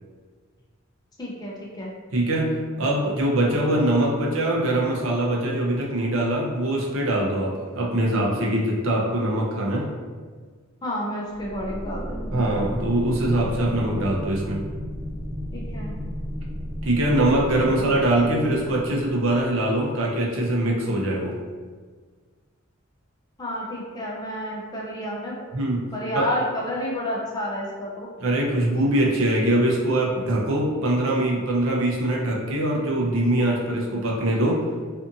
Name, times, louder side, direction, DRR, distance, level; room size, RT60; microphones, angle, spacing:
voice 1, 1.2-1.9 10.8-12.4 15.5-16.0 23.4-25.5 25.9-28.1, equal, 20° left, -4 dB, 0.5 m, -30 dB
voice 2, 2.1-9.9 12.3-14.7 16.8-21.4 25.5-26.3 28.2-34.7, right 1 dB, 80° right, -2 dB, 0.6 m, -23 dB
sound 1, 11.3-19.6, equal, 10° right, 1.2 m, -33 dB
2.6 x 2.5 x 2.5 m, 1.5 s
head